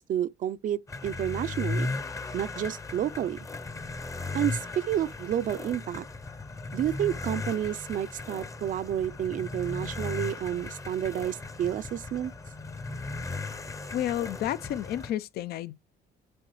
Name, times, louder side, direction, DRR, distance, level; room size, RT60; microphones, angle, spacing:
voice 1, 0.0-1.9 2.3-3.5 4.3-6.1 6.7-12.3, right 10 dB, 50° right, 0.5 m, -30 dB
sound 1, 0.9-15.1, left 3 dB, 20° left, 0.7 m, -37 dB
voice 2, 13.9-15.7, left 12 dB, 65° left, 0.6 m, -31 dB
7.8 x 4.6 x 3.1 m
cardioid pair, 110°, 17 cm